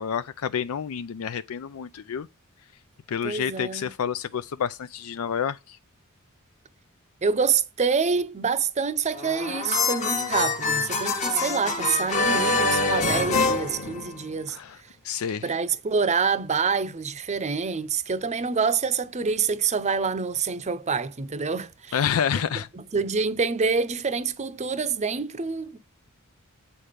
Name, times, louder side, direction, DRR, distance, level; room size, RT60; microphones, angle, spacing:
voice 1, 0.0-2.3 3.1-5.8 14.5-14.8 15.0-15.5 21.9-22.7, left 8 dB, 75° left, 0.4 m, -29 dB
voice 2, 3.2-3.9 7.2-14.6 15.4-22.0 22.7-25.8, right 5 dB, 30° right, 0.6 m, -26 dB
sound 1, 9.1-14.5, left 3 dB, 35° left, 1.2 m, -25 dB
8.5 x 4.4 x 5.0 m
head